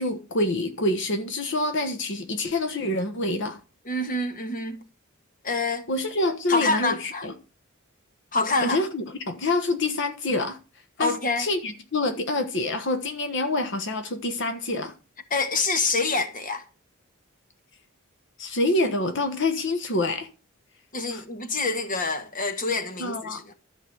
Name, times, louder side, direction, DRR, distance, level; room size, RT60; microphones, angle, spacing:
voice 1, 0.0-3.6 5.9-7.3 8.6-10.6 11.0-14.9 18.4-20.3 21.1-21.2 23.0-23.4, left 2 dB, 60° left, 1.3 m, -26 dB
voice 2, 3.8-4.8 5.4-5.8 6.5-7.3 8.3-8.8 11.0-11.5 15.3-16.6 20.9-23.4, left 3 dB, 40° left, 1.6 m, -26 dB
13.0 x 5.2 x 7.9 m
head